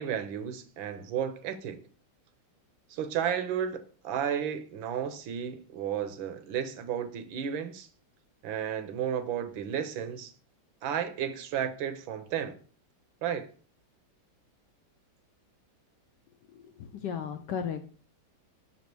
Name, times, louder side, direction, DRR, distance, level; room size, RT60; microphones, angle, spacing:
voice 1, 0.0-1.8 2.9-7.9 8.4-10.3 10.8-12.6 13.2-13.5, right 8 dB, 75° right, 1.4 m, -33 dB
voice 2, 16.5-17.8, left 7 dB, 70° left, 1.1 m, -35 dB
5.7 x 4.2 x 4.5 m
omnidirectional pair, 2.2 m